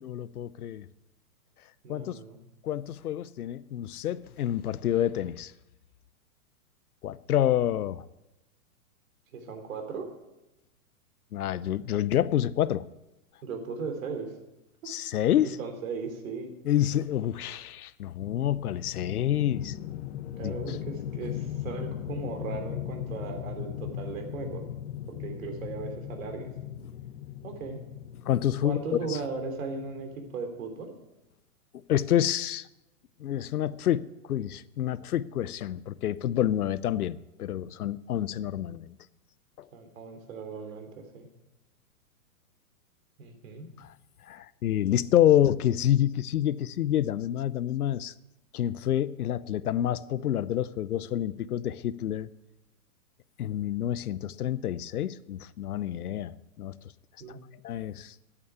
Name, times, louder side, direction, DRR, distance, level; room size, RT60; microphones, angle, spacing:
voice 1, 0.0-0.9 1.9-2.1 2.6-5.5 7.0-8.0 11.3-12.8 14.9-15.6 16.7-19.7 20.4-20.5 28.3-28.8 29.1-29.2 31.9-32.7 33.2-39.0 43.8-43.9 44.3-48.1 48.5-52.3 53.4-56.3 56.6-56.8 57.6-58.1, left 11 dB, 80° left, 0.8 m, -28 dB
voice 2, 1.8-2.4 9.3-10.1 13.4-14.3 14.8-14.9 15.6-16.5 20.4-24.6 25.1-26.5 27.4-27.8 28.6-30.9 39.7-41.3 43.2-43.7 57.2-57.4, right 4 dB, 60° right, 3.3 m, -37 dB
sound 1, 18.2-30.4, left 11 dB, 50° left, 1.0 m, -38 dB
9.8 x 8.5 x 9.4 m
hypercardioid pair, 130°, 44 cm